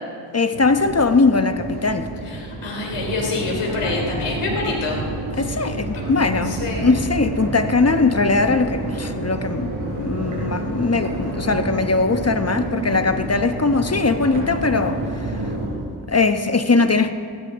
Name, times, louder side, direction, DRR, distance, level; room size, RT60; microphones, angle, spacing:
voice 1, 0.3-2.1 5.4-6.6 6.8-15.0 16.1-17.1, left 3 dB, 30° left, 8 dB, 1.1 m, -20 dB
Crowd, 0.5-15.7, right 2 dB, 80° right, 4.7 m, -29 dB
voice 2, 2.2-5.0 5.5-6.0 6.4-6.9, left 3 dB, 90° left, -1 dB, 3.4 m, -27 dB
18.0 x 16.5 x 3.8 m, 2.1 s
cardioid pair, 50°, 50 cm